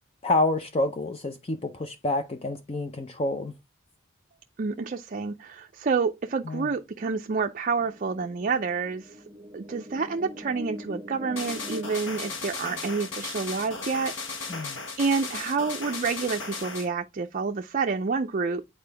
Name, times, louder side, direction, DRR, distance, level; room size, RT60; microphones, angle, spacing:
voice 1, 0.2-3.5 6.5-6.7 14.5-14.8, left 2 dB, 30° left, 0.5 m, -28 dB
voice 2, 4.6-9.2 9.5-18.6, right 4 dB, 40° right, 0.4 m, -29 dB
sound 1, 7.8-14.6, left 1 dB, 20° right, 0.9 m, -44 dB
sound 2, 11.4-16.9, left 4 dB, 65° left, 1.1 m, -36 dB
8.6 x 4.3 x 3.3 m
head